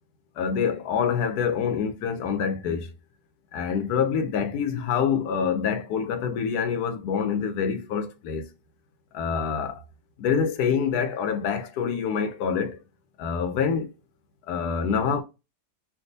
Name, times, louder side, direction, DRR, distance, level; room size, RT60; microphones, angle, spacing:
voice 1, 0.4-2.9 3.5-8.5 9.1-9.8 10.2-12.8 13.2-13.9 14.5-15.2, left 6 dB, 75° left, 1.1 m, -26 dB
3.4 x 2.6 x 2.6 m
omnidirectional pair, 1.8 m